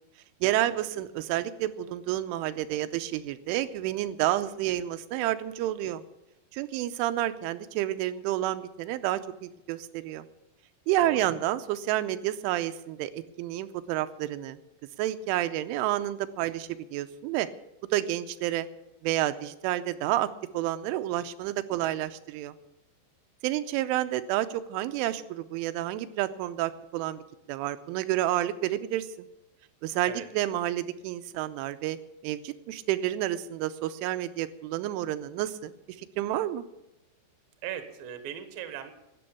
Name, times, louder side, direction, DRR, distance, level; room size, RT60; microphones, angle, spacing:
voice 1, 0.4-6.0 6.5-10.3 10.9-14.6 15.0-17.5 17.9-18.7 19.0-22.5 23.4-27.2 27.5-29.1 29.8-32.0 32.2-35.7 36.0-36.6, right 13 dB, 90° right, 10 dB, 3.2 m, -30 dB
voice 2, 11.0-11.3 30.1-30.3 37.6-38.9, right 9 dB, 65° right, 8 dB, 2.6 m, -38 dB
13.0 x 9.4 x 8.4 m, 0.93 s
omnidirectional pair, 5.4 m